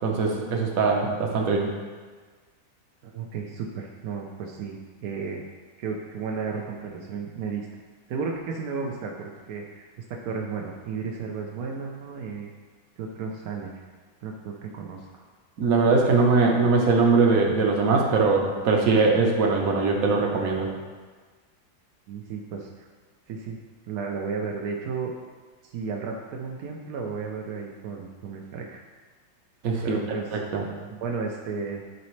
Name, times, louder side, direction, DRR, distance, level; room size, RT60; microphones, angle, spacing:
voice 1, 0.0-1.7 15.6-20.7 29.6-30.0 30.3-30.6, right 4 dB, 55° right, 1 dB, 1.1 m, -21 dB
voice 2, 3.1-5.4 5.8-7.7 8.1-12.5 13.0-13.8 14.2-15.3 16.1-16.2 22.1-22.9 23.3-23.6 23.9-25.1 25.6-28.8 29.8-30.4 30.9-31.8, right 5 dB, 70° right, 0 dB, 0.8 m, -33 dB
11.0 x 4.2 x 3.2 m, 1.4 s
omnidirectional pair, 2.2 m